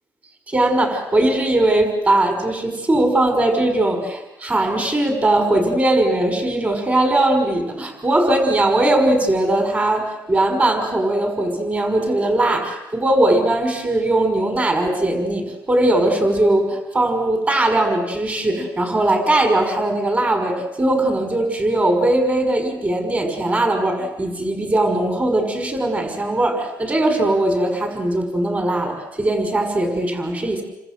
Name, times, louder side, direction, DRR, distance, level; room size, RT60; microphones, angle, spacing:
voice 1, 0.5-30.6, right 1 dB, 20° right, 5 dB, 5.9 m, -19 dB
29.0 x 26.5 x 7.8 m, 0.97 s
cardioid pair, 120°, 7 cm